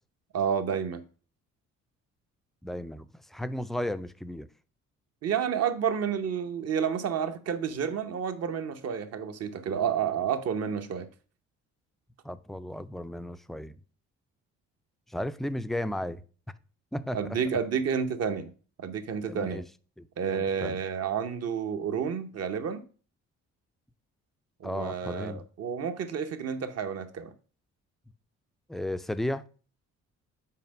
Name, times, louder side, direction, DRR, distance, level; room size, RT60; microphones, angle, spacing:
voice 1, 0.3-1.0 5.2-11.1 17.1-18.5 18.8-19.6 20.2-22.8 24.6-27.3, right 7 dB, 55° right, 0.9 m, -30 dB
voice 2, 2.6-4.5 12.2-13.8 15.1-16.2 16.9-17.4 19.3-19.6 20.0-20.8 24.6-25.4 28.7-29.5, left 1 dB, ahead, 0.3 m, -34 dB
5.8 x 4.3 x 5.3 m
cardioid pair, 90°, 30 cm